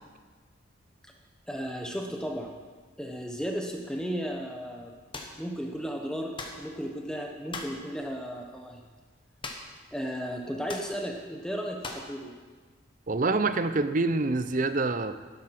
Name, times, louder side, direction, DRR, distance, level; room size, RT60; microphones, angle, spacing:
voice 1, 1.5-2.5 3.0-4.9 5.4-8.8 9.9-12.3, equal, 5° left, 1 dB, 0.9 m, -34 dB
sound 1, 5.1-5.4 6.4-6.6 7.5-7.8 9.4-9.8 10.1-10.2 10.7-10.9 11.8-12.1, left 3 dB, 25° left, 1.2 m, -39 dB
voice 2, 13.1-15.2, right 3 dB, 40° right, 12 dB, 0.6 m, -26 dB
11.5 x 11.5 x 5.9 m, 1.4 s
head